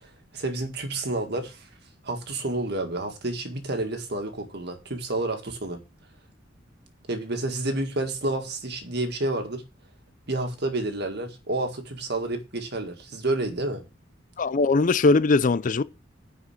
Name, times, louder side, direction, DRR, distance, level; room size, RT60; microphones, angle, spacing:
voice 1, 0.0-1.6 2.0-5.8 7.1-9.6 10.3-13.8, right 2 dB, 55° right, 1.8 m, -29 dB
voice 2, 14.4-15.8, left 3 dB, 40° left, 0.5 m, -20 dB
10.0 x 4.9 x 6.5 m
head